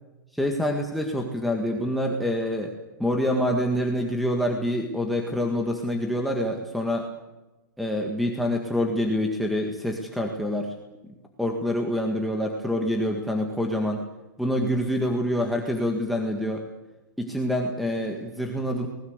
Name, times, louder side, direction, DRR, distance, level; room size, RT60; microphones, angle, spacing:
voice 1, 0.3-2.7 3.0-7.1 7.8-10.7 11.4-14.0 14.4-16.6 17.2-18.9, left 1 dB, ahead, 2 dB, 1.8 m, -26 dB
25.5 x 20.0 x 8.2 m, 1.1 s
hypercardioid pair, 160°, 10 cm